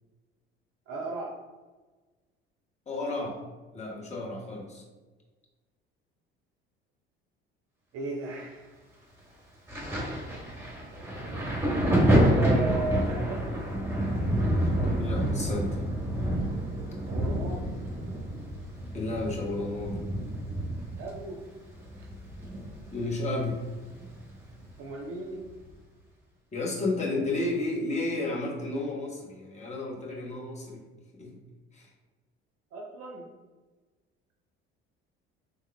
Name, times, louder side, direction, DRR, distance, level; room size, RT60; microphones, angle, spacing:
voice 1, 0.9-1.4 7.9-8.8 12.3-13.4 17.1-17.7 21.0-21.4 22.0-22.1 24.8-25.4 32.7-33.2, right 3 dB, 45° right, 0 dB, 0.5 m, -36 dB
voice 2, 2.9-3.4 3.7-4.8 15.0-15.9 18.9-20.0 22.9-23.6 26.5-30.8 31.2-31.3 31.7-31.9, left 2 dB, 20° left, -1 dB, 0.9 m, -32 dB
Thunder, 9.7-23.0 23.3-24.7 25.5-25.7, right 1 dB, 10° right, 1.1 m, -28 dB
3.5 x 3.2 x 2.2 m, 1.3 s
figure-of-eight pair, 55°, 31 cm